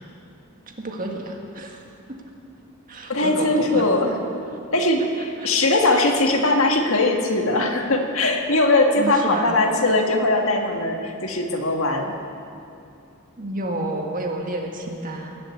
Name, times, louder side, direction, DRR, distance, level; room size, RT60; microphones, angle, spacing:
voice 1, 0.8-1.8 2.1-2.2 2.9-3.9 5.4-5.5 9.0-9.5 13.4-15.4, right 1 dB, 40° right, 1 dB, 1.7 m, -30 dB
voice 2, 3.1-4.1 4.7-12.2, left 2 dB, 70° left, 2 dB, 1.7 m, -20 dB
20.0 x 7.7 x 8.5 m, 2.5 s
head